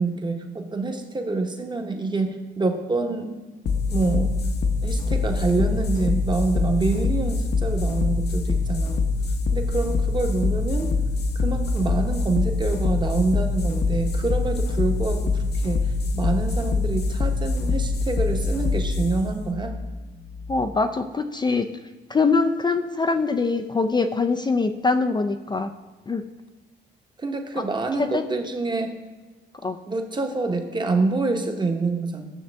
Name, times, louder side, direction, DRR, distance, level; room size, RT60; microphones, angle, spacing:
voice 1, 0.0-3.4 3.9-4.3 4.8-9.0 9.5-11.0 11.3-19.8 27.2-28.9 29.9-32.3, right 3 dB, 20° right, 4 dB, 1.0 m, -26 dB
sound 1, 3.6-20.7, left 3 dB, 55° left, 0.8 m, -24 dB
voice 2, 20.5-21.7 22.1-25.7 26.1-26.2 27.6-27.7 28.0-28.2 29.6-29.8, left 4 dB, 20° left, 8 dB, 0.4 m, -23 dB
9.2 x 6.5 x 3.4 m, 1.3 s
cardioid pair, 90°, 20 cm